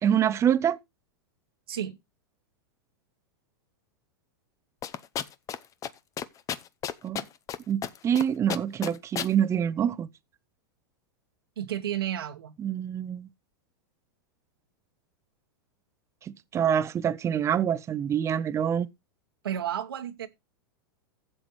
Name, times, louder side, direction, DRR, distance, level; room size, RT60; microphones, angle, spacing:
voice 1, 0.0-0.8 7.0-7.3 7.7-10.1 12.6-13.3 16.2-18.9, right 9 dB, 25° right, 0.7 m, -26 dB
sound 1, 4.8-5.6 5.8-5.9 6.2-7.6 7.8-8.2 8.5-9.3, left 9 dB, 25° left, 0.7 m, -32 dB
voice 2, 11.6-12.5 19.4-20.3, right 10 dB, 85° right, 1.3 m, -32 dB
15.0 x 7.8 x 3.1 m
hypercardioid pair, 120°, 12 cm